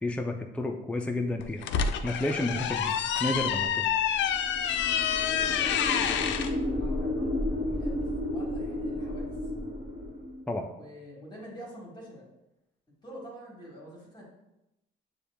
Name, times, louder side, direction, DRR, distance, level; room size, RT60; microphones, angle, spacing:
voice 1, 0.0-1.6 2.0-2.9 3.2-3.8 10.5-10.7, left 2 dB, 5° left, 3 dB, 0.4 m, -30 dB
sound 1, 1.4-6.5, left 8 dB, 65° left, 0.4 m, -28 dB
sound 2, 4.3-10.4, left 1 dB, 30° right, 1.4 m, -32 dB
voice 2, 5.2-9.4 10.8-12.2 13.0-14.2, equal, 20° left, -5 dB, 1.5 m, -46 dB
6.7 x 2.3 x 3.4 m, 0.91 s
cardioid pair, 90°, 20 cm